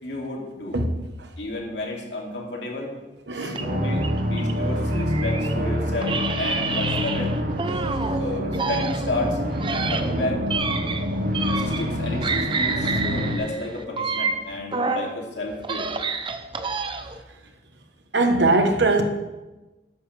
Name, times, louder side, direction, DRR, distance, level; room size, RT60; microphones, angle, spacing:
voice 1, 0.0-0.8 1.4-2.9 3.3-7.3 8.1-9.4 9.9-10.4 11.4-15.9, left 2 dB, 70° left, -1 dB, 2.6 m, -31 dB
voice 2, 3.3-3.6 18.1-19.0, right 2 dB, 70° right, 5 dB, 1.2 m, -20 dB
sound 1, 3.5-5.6 6.0-8.2 8.5-12.0 12.2-15.1 15.5-17.2, right 4 dB, 30° right, 0.7 m, -29 dB
sound 2, 3.6-13.4, equal, 50° right, 1.0 m, -26 dB
13.0 x 10.5 x 3.4 m, 1.1 s
head